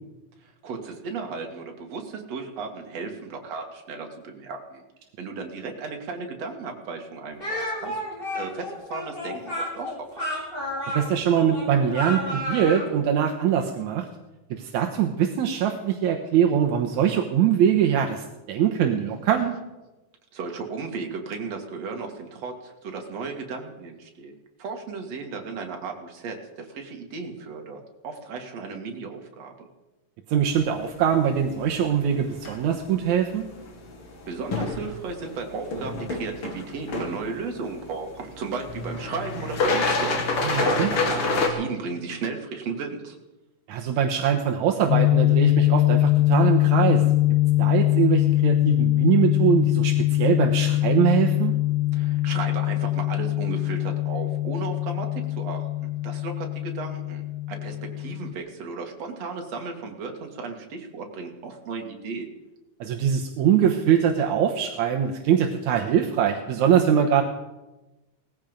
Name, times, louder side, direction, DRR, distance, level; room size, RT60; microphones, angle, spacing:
voice 1, 0.4-4.8 5.2-8.0 8.3-10.2 20.3-24.3 24.6-29.5 34.3-43.2 51.9-57.2 57.5-62.3, right 4 dB, 60° right, 3 dB, 3.1 m, -35 dB
Speech, 7.4-12.9, left 1 dB, 15° left, 4.5 m, -31 dB
voice 2, 10.9-14.1 14.5-19.6 30.3-33.5 40.4-40.9 43.7-47.0 47.6-51.5 62.8-67.2, right 9 dB, 80° right, 3 dB, 2.4 m, -22 dB
sound 1, 30.5-41.5, left 3 dB, 50° left, 2.7 m, -30 dB
sound 2, 44.9-58.3, left 16 dB, 85° left, 2.1 m, -22 dB
19.0 x 14.5 x 5.2 m, 1.0 s
omnidirectional pair, 3.4 m